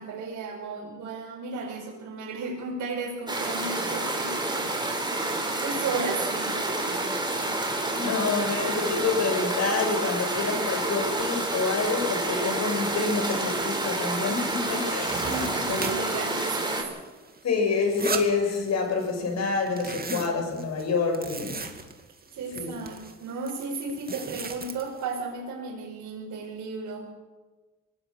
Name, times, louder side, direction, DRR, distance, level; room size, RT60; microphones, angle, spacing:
voice 1, 0.0-4.8 5.0-7.0 14.2-14.4 15.2-17.0 21.6-21.7 22.3-27.1, right 4 dB, 75° right, -3 dB, 5.6 m, -35 dB
sound 1, 3.3-16.8, right 2 dB, 15° right, 5.6 m, -29 dB
voice 2, 7.9-15.4 15.7-16.0 17.4-21.6 22.5-22.8, left 4 dB, 60° left, 4 dB, 7.0 m, -27 dB
sound 2, 11.6-11.7 12.0-12.4 12.7-14.2 14.5-16.3 16.6-19.0 19.3-25.2, right 4 dB, 30° right, 2.6 m, -38 dB
24.0 x 19.0 x 6.6 m, 1.3 s
cardioid pair, 90°, 30 cm